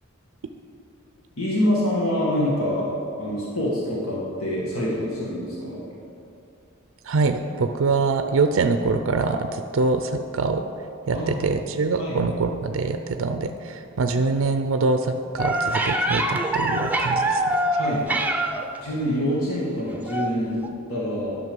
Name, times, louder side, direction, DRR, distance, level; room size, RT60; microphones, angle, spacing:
voice 1, 1.4-2.9 3.2-5.8 11.1-11.4 12.0-12.2 17.7-18.1 18.8-20.6 20.9-21.4, left 1 dB, 85° left, -6 dB, 1.9 m, -26 dB
voice 2, 7.0-10.7 11.1-17.6, right 3 dB, 70° right, 7 dB, 0.5 m, -24 dB
sound 1, 15.4-18.8 20.1-20.3 20.6-20.7, right 1 dB, 10° right, 0.6 m, -24 dB
11.0 x 6.3 x 5.3 m, 2.6 s
head